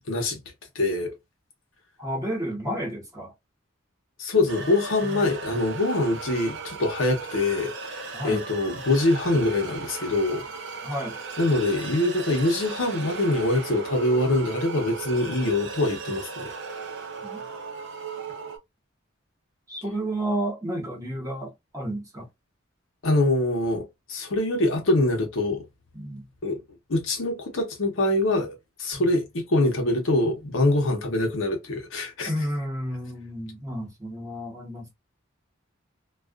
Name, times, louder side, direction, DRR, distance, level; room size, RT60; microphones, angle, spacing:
voice 1, 0.1-0.4 0.7-1.1 4.2-10.5 11.4-16.5 23.0-23.8 24.1-25.7 26.4-26.6 26.9-32.3, left 2 dB, 75° left, 0.8 m, -24 dB
voice 2, 2.0-3.3 5.0-5.3 8.1-8.4 10.8-11.1 17.2-17.4 19.7-22.3 25.9-26.2 28.9-29.0 32.3-34.9, right 1 dB, 15° right, 1.0 m, -31 dB
sound 1, 4.5-18.6, right 5 dB, 60° right, 0.6 m, -36 dB
2.3 x 2.3 x 2.3 m
head